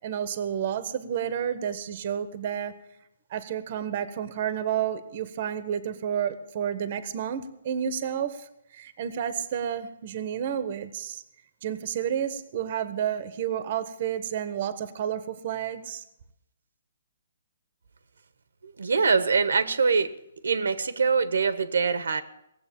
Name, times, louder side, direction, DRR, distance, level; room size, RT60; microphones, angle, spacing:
voice 1, 0.0-2.7 3.3-11.2 11.6-16.0, right 9 dB, 40° right, 12 dB, 1.1 m, -30 dB
voice 2, 18.6-20.1 20.4-22.2, right 5 dB, 85° right, 13 dB, 1.2 m, -24 dB
18.0 x 7.8 x 7.6 m, 0.80 s
hypercardioid pair, 160°, 0 cm